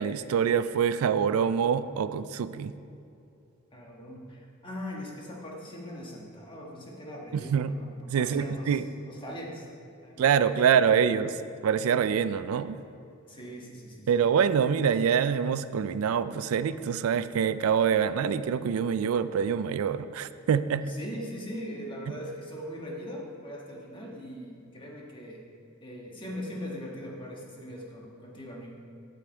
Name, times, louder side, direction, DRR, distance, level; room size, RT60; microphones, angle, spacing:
voice 1, 0.0-2.7 7.3-7.7 8.1-8.9 10.2-11.3 11.6-12.8 14.1-20.9, right 7 dB, 80° right, 14 dB, 0.3 m, -25 dB
voice 2, 3.7-9.7 10.0-10.7 11.0-11.1 13.3-14.3 20.8-25.4 25.8-28.8, equal, 25° left, -2 dB, 1.4 m, -41 dB
8.3 x 7.8 x 4.4 m, 2.6 s
head